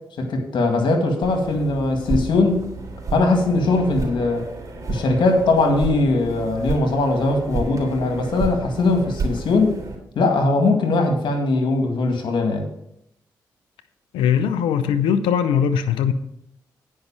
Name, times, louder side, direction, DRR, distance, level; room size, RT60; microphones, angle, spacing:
voice 1, 0.2-2.7 3.1-4.4 4.9-9.8 10.2-12.7, left 2 dB, 70° left, 2.0 m, -20 dB
sound 1, 1.2-10.0, right 3 dB, 40° right, 3.1 m, -31 dB
voice 2, 14.1-16.1, left 8 dB, 90° left, 0.5 m, -20 dB
9.4 x 5.4 x 7.3 m
supercardioid pair, 45°, 8 cm